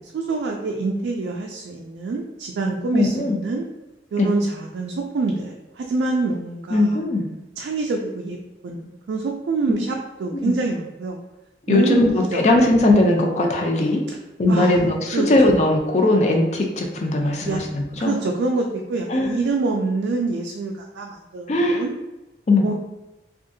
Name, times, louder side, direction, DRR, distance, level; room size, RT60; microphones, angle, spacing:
voice 1, 0.1-3.6 4.1-7.0 7.6-8.4 8.6-11.2 11.7-12.4 14.5-14.8 15.1-15.3 17.2-17.6 18.0-21.9 22.6-22.7, right 3 dB, 75° right, 0 dB, 0.3 m, -25 dB
voice 2, 2.9-3.4 4.2-4.3 6.7-7.3 9.7-9.8 10.4-10.5 11.7-14.0 14.4-18.1 19.1-19.4 21.5-21.8 22.5-22.7, left 2 dB, 40° left, 2 dB, 0.4 m, -19 dB
2.6 x 2.4 x 2.6 m, 1.0 s
head